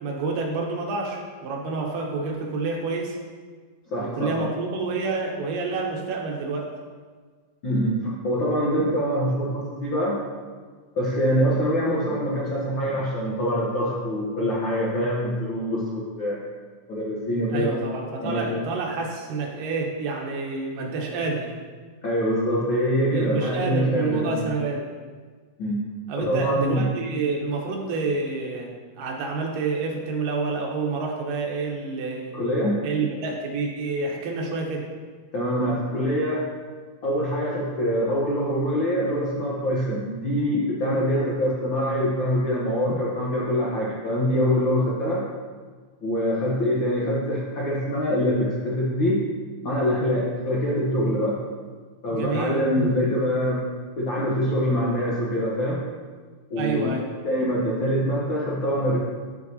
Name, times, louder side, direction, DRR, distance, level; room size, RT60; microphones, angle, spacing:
voice 1, 0.0-3.2 4.0-6.7 17.5-21.5 23.1-24.9 26.1-32.4 32.8-34.9 52.1-52.6 56.6-57.1, right 3 dB, 80° right, 0 dB, 2.7 m, -28 dB
voice 2, 3.9-4.5 7.6-10.2 11.0-16.4 16.9-17.8 18.2-18.6 22.0-24.5 25.6-25.8 26.2-26.9 32.3-32.8 35.3-36.4 37.0-45.2 46.0-49.2 49.6-51.4 52.0-53.7 54.0-55.8 56.5-56.9 57.2-59.0, equal, 90° left, -5 dB, 1.0 m, -24 dB
12.5 x 4.6 x 2.7 m, 1.5 s
omnidirectional pair, 3.8 m